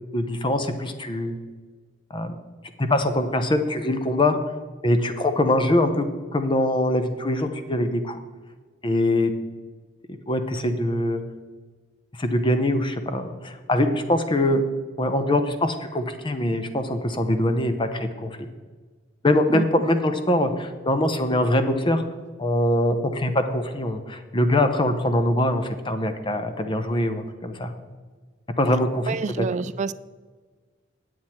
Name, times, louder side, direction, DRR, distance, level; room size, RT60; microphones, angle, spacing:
voice 1, 0.1-1.4 2.1-2.4 2.8-4.4 4.8-6.0 6.3-8.2 8.8-9.3 10.1-11.2 12.2-14.6 15.0-18.5 19.2-22.0 22.4-27.7 28.6-29.7, left 1 dB, 25° left, 8 dB, 0.8 m, -23 dB
voice 2, 29.1-29.9, right 5 dB, 40° right, 16 dB, 0.3 m, -27 dB
9.6 x 7.7 x 4.3 m, 1.4 s
head